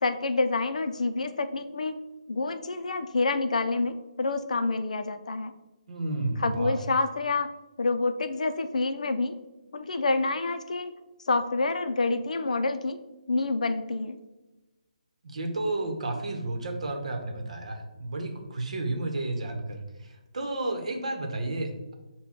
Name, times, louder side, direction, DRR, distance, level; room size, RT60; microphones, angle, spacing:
voice 1, 0.0-2.0 2.3-5.5 6.4-7.5 7.8-9.4 9.7-10.9 11.3-13.0 13.3-14.2, left 3 dB, 70° left, 9 dB, 0.4 m, -27 dB
voice 2, 5.9-6.8 15.2-21.9, right 2 dB, 60° right, 4 dB, 0.9 m, -32 dB
6.0 x 2.2 x 3.6 m, 1.1 s
hypercardioid pair, 170°, 4 cm